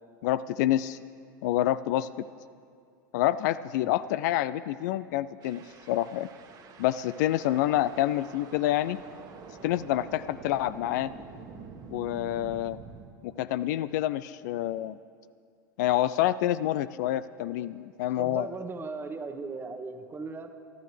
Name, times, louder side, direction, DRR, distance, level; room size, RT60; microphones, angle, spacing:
voice 1, 0.2-1.0 1.4-2.1 3.1-5.6 5.9-6.3 6.8-9.0 9.6-11.1 11.9-12.8 13.2-15.0 15.8-18.5, left 13 dB, 55° left, 16 dB, 0.4 m, -27 dB
sound 1, 5.4-13.1, right 5 dB, 35° right, 1.4 m, -47 dB
voice 2, 18.2-20.5, right 4 dB, 20° right, 7 dB, 1.2 m, -37 dB
23.5 x 13.0 x 3.3 m, 2.2 s
figure-of-eight pair, 85°, 11 cm